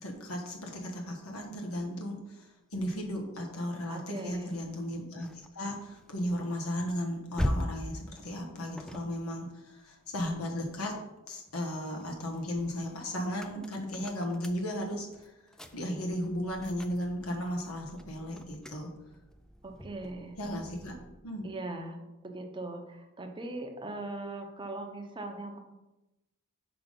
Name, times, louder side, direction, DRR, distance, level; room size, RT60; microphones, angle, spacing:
voice 1, 0.0-10.9 11.3-18.9 20.4-20.9 21.2-21.5, equal, 80° left, 1 dB, 1.3 m, -35 dB
voice 2, 3.9-4.5 19.6-20.3 21.4-25.6, right 2 dB, 20° right, 4 dB, 0.8 m, -40 dB
sound 1, 4.5-11.0 11.5-21.3, equal, 5° left, 0.3 m, -42 dB
6.0 x 5.1 x 5.2 m, 0.99 s
head